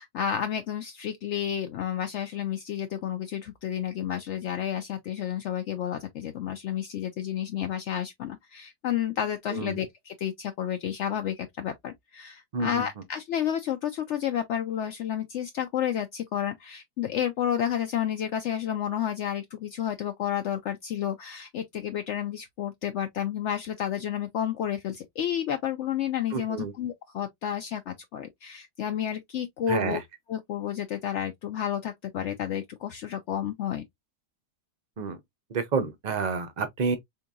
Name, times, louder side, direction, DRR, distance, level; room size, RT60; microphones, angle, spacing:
voice 1, 0.0-30.0 30.3-33.8, left 10 dB, 80° left, 0.6 m, -31 dB
voice 2, 12.5-12.9 26.3-26.7 29.7-30.0 35.0-35.2 35.5-37.0, right 5 dB, 65° right, 0.4 m, -29 dB
4.4 x 2.8 x 2.3 m
omnidirectional pair, 1.7 m